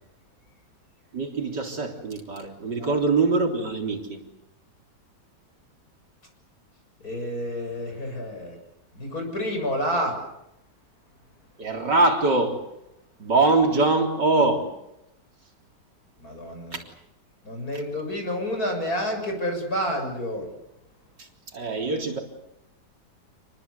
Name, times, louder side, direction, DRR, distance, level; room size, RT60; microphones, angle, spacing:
voice 1, 1.1-4.2 11.6-12.7 13.2-14.7 16.7-16.8 21.2-22.2, right 3 dB, 75° right, 4.2 m, -23 dB
voice 2, 7.0-8.6 8.9-10.2 16.2-16.8 17.4-20.5, equal, 55° left, 7.3 m, -29 dB
28.5 x 21.0 x 8.2 m
omnidirectional pair, 1.9 m